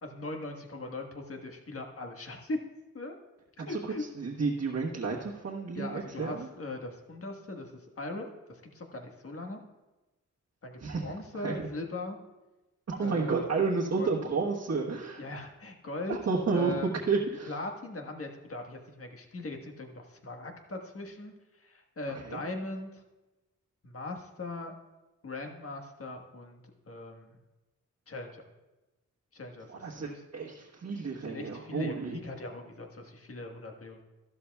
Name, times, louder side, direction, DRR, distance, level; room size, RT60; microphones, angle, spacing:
voice 1, 0.0-2.6 2.9-3.1 3.6-4.0 5.7-9.6 10.6-12.2 13.0-13.4 14.0-14.1 15.2-16.2 16.5-17.0 17.5-23.0 23.8-24.7 25.2-26.6 26.9-27.4 28.1-28.4 29.3-30.2 30.9-34.0, left 2 dB, 45° left, 3 dB, 1.5 m, -40 dB
voice 2, 4.2-6.5 10.8-11.1 11.4-11.7 12.9-15.2 16.1-17.5 22.2-22.4 29.7-32.2, right 4 dB, 55° right, -5 dB, 1.3 m, -31 dB
13.5 x 12.5 x 2.3 m, 1.1 s
wide cardioid pair, 85°, 31 cm